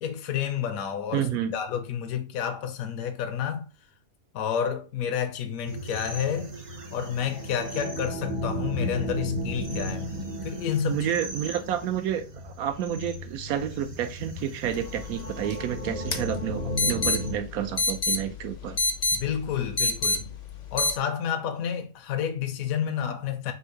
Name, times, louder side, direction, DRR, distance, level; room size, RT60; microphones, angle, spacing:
voice 1, 0.0-3.6 4.3-6.5 6.9-10.1 10.4-11.1 19.1-20.3 20.7-23.5, left 8 dB, 75° left, 1.1 m, -30 dB
voice 2, 1.1-1.5 10.8-18.8, right 10 dB, 85° right, 1.1 m, -30 dB
sound 1, 5.7-17.3, equal, 35° right, 0.6 m, -34 dB
sound 2, 14.7-21.0, left 3 dB, 50° left, 0.5 m, -29 dB
3.5 x 2.8 x 4.5 m
omnidirectional pair, 1.5 m